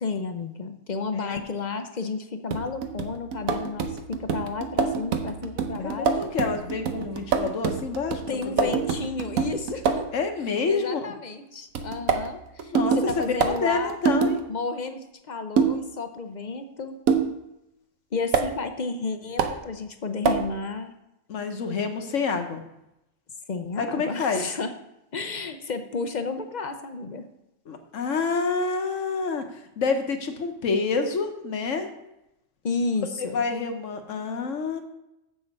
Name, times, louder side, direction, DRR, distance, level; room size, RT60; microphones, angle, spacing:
voice 1, 0.0-6.1 8.3-10.1 10.7-14.0 14.5-17.0 18.1-20.9 23.5-24.7 25.1-27.2 32.6-33.4, left 4 dB, 45° left, 8 dB, 0.6 m, -32 dB
sound 1, 2.5-10.1 11.7-14.4 15.6-15.9 17.1-17.4 18.3-18.5 19.4-19.6 20.2-20.5, right 6 dB, 90° right, 1.2 m, -26 dB
voice 2, 5.8-8.7 10.1-11.1 12.7-14.4 21.3-22.6 23.8-24.5 27.7-29.5 29.8-31.9 33.2-34.8, left 4 dB, 65° left, 6 dB, 1.3 m, -28 dB
7.6 x 7.1 x 5.4 m, 0.88 s
omnidirectional pair, 1.4 m